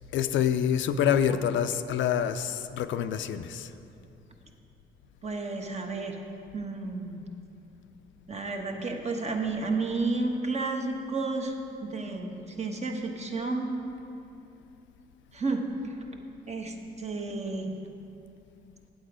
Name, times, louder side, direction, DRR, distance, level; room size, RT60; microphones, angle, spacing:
voice 1, 0.1-3.7, left 9 dB, 70° left, 10 dB, 0.4 m, -26 dB
voice 2, 5.2-6.2 6.5-7.2 8.3-11.5 11.8-13.7 15.3-15.9 16.5-17.7, right 3 dB, 35° right, 3 dB, 1.0 m, -31 dB
8.7 x 7.8 x 4.9 m, 2.7 s
cardioid pair, 90°, 20 cm